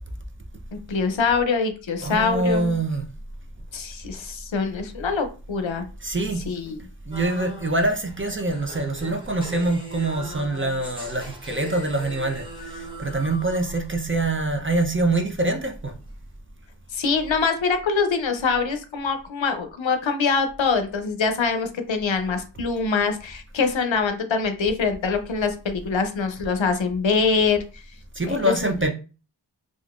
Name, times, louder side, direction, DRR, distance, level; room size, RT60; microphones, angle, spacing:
voice 1, 0.9-2.8 3.7-5.9 6.5-6.8 16.9-27.8 28.2-28.7, left 5 dB, 80° left, 0.6 m, -24 dB
voice 2, 2.0-3.1 6.0-6.4 7.1-15.9 28.2-28.9, right 2 dB, 25° right, 0.5 m, -25 dB
sound 1, 7.1-14.4, right 1 dB, 10° right, 0.9 m, -40 dB
3.6 x 2.4 x 2.4 m
wide cardioid pair, 40°, 46 cm